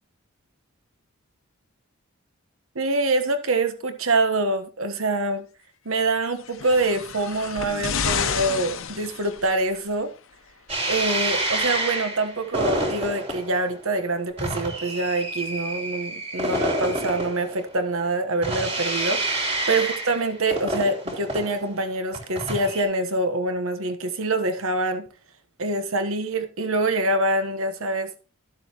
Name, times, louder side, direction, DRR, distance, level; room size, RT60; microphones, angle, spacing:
voice 1, 2.7-5.4 5.8-10.1 10.9-25.1 25.6-28.1, right 2 dB, 70° right, 1.2 m, -25 dB
sound 1, 6.4-9.8 10.7-10.8, left 6 dB, 65° left, 0.8 m, -30 dB
sound 2, 10.7-22.8, right 1 dB, 30° right, 3.3 m, -28 dB
12.0 x 7.7 x 3.0 m
head